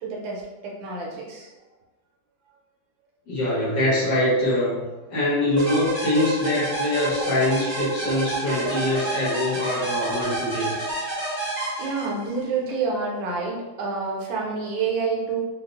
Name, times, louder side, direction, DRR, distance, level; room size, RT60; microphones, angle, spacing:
voice 1, 0.0-1.5 11.8-15.4, right 4 dB, 80° right, -2 dB, 1.4 m, -28 dB
voice 2, 3.3-4.8 5.1-10.7, left 1 dB, 75° left, -8 dB, 2.0 m, -23 dB
sound 1, 5.6-12.4, right 2 dB, 35° right, 0.7 m, -29 dB
4.4 x 2.0 x 2.4 m, 1.1 s
omnidirectional pair, 2.0 m